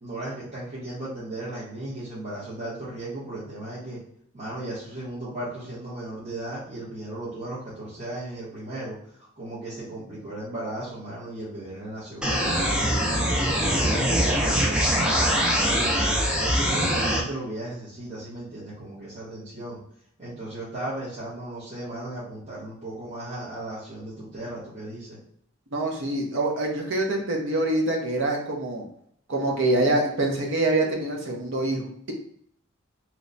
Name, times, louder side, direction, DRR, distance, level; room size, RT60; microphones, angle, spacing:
voice 1, 0.0-4.0 4.3-9.0 9.4-13.4 13.8-16.0 16.3-19.8 20.2-25.2, right 1 dB, 35° right, -11 dB, 1.0 m, -36 dB
sound 1, 12.2-17.2, equal, 5° right, 0.4 m, -23 dB
voice 2, 25.7-28.8 29.3-32.1, right 2 dB, 65° right, 0 dB, 0.8 m, -25 dB
3.0 x 2.2 x 3.8 m, 0.68 s
head